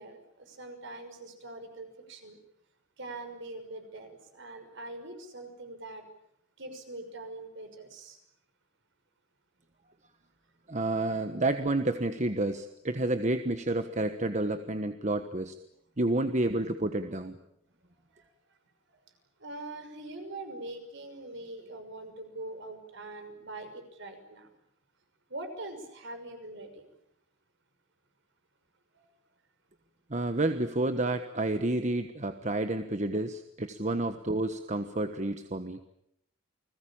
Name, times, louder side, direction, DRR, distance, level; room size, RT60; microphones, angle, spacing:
voice 1, 0.0-2.4 3.0-6.0 6.6-8.2 18.1-18.3 19.4-24.5 25.3-26.9 28.9-29.1, right 2 dB, 60° right, 7 dB, 6.0 m, -43 dB
voice 2, 10.7-15.5 16.0-17.4 30.1-35.8, right 2 dB, 35° right, 8 dB, 1.3 m, -30 dB
29.5 x 21.0 x 8.8 m, 0.80 s
head